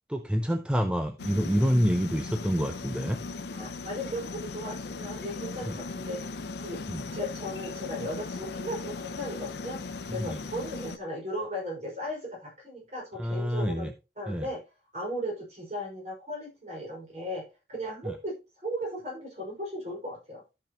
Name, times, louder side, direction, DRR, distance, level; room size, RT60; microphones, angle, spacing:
voice 1, 0.1-3.2 5.7-5.8 6.9-7.0 10.1-10.4 13.2-13.9 14.3-14.5 18.1-18.2, equal, 5° right, 6 dB, 0.5 m, -27 dB
sound 1, 1.2-11.0, left 3 dB, 70° left, 0.6 m, -38 dB
voice 2, 3.5-6.9 7.1-14.6 14.9-20.4, equal, 40° right, -2 dB, 5.4 m, -37 dB
13.5 x 5.9 x 3.0 m, 0.27 s
head